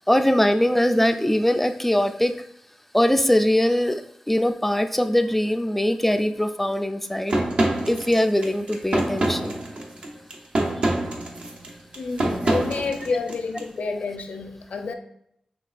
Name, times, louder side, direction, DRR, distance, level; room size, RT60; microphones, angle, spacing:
voice 1, 0.1-2.4 2.9-4.0 4.3-7.4 7.9-9.6 10.8-10.9, left 1 dB, 5° left, 8 dB, 0.3 m, -21 dB
sound 1, 7.3-13.6, right 1 dB, 55° right, 0.7 m, -26 dB
voice 2, 12.0-14.9, left 4 dB, 80° left, 4 dB, 0.5 m, -29 dB
5.9 x 3.1 x 2.4 m, 0.72 s
wide cardioid pair, 95°, 2 cm